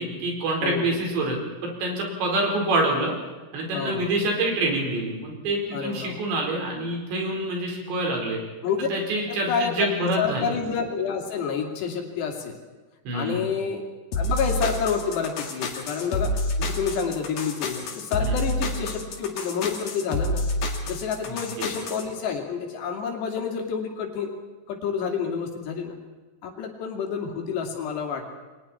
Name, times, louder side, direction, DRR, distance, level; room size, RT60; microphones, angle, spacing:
voice 1, 0.0-1.4 1.6-3.1 3.5-8.4 8.9-10.5 13.1-13.5 18.2-18.4 21.3-21.4, right 2 dB, 90° right, 0 dB, 6.7 m, -26 dB
voice 2, 0.6-0.9 3.7-4.1 5.7-6.2 8.6-8.9 9.3-9.9 10.2-12.5 13.1-13.9 14.2-20.4 20.9-24.3 24.7-26.0 26.4-28.3, left 6 dB, 75° left, 1 dB, 4.8 m, -29 dB
sound 1, 14.1-22.0, left 1 dB, 60° left, 3.7 m, -28 dB
29.5 x 23.0 x 4.4 m, 1.3 s
omnidirectional pair, 5.0 m